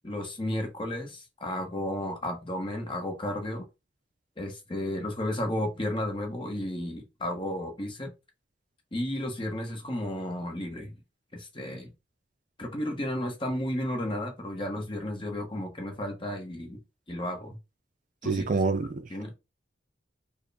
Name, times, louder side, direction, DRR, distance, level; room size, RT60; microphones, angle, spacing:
voice 1, 0.0-3.7 4.4-8.1 8.9-10.9 11.3-11.9 12.6-16.8 17.1-17.6 18.2-18.5 19.1-19.3, left 1 dB, 30° left, 1.0 m, -33 dB
voice 2, 18.2-19.0, right 4 dB, 45° right, 0.4 m, -27 dB
4.6 x 2.1 x 3.3 m
head